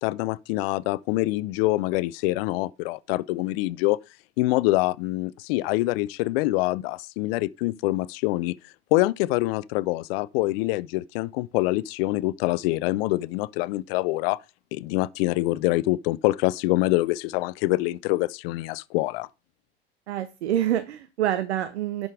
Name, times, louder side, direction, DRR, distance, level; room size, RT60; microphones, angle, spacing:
voice 1, 0.0-4.0 4.4-8.6 8.9-14.4 14.7-19.3, left 19 dB, 60° left, 0.6 m, -25 dB
voice 2, 20.1-22.1, right 11 dB, 80° right, 0.8 m, -26 dB
11.0 x 5.2 x 3.5 m
hypercardioid pair, 75°, 33 cm